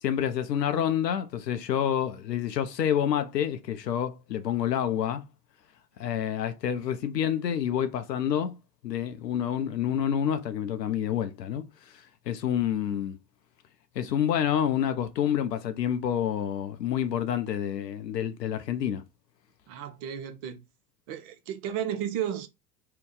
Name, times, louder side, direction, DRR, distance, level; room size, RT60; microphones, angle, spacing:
voice 1, 0.0-5.2 6.0-8.5 8.8-11.6 12.3-13.2 14.0-19.0, left 9 dB, 80° left, 0.6 m, -28 dB
voice 2, 19.7-20.6 21.1-22.5, right 9 dB, 50° right, 0.8 m, -33 dB
2.7 x 2.2 x 3.6 m
figure-of-eight pair, 80°, 49 cm